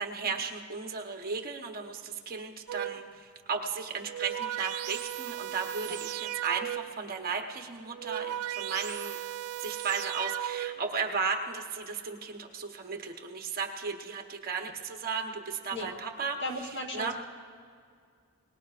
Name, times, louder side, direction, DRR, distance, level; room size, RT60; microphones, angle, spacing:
voice 1, 0.0-9.2 9.6-17.1, right 5 dB, 40° right, 3 dB, 1.0 m, -35 dB
sound 1, 2.7-3.2 3.9-7.1 7.8-11.0, right 13 dB, 70° right, 0.3 m, -36 dB
voice 2, 16.4-17.1, left 1 dB, 55° left, 2 dB, 1.3 m, -36 dB
22.5 x 20.0 x 2.5 m, 2.2 s
head